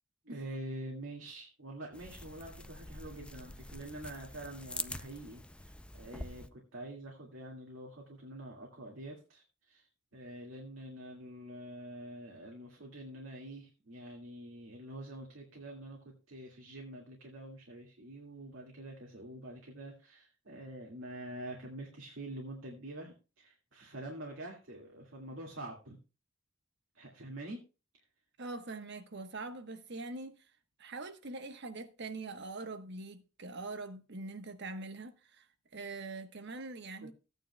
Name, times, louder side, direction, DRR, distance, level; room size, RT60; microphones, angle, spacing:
voice 1, 0.3-9.9 10.1-26.0 26.9-27.6 27.9-28.0 37.0-37.1, right 1 dB, 75° right, 2.1 m, -46 dB
sound 1, 1.9-6.5, left 1 dB, 5° left, 0.4 m, -45 dB
voice 2, 28.4-30.4 30.8-35.4 35.7-37.1, right 3 dB, 60° right, 1.2 m, -43 dB
15.5 x 9.2 x 2.3 m
head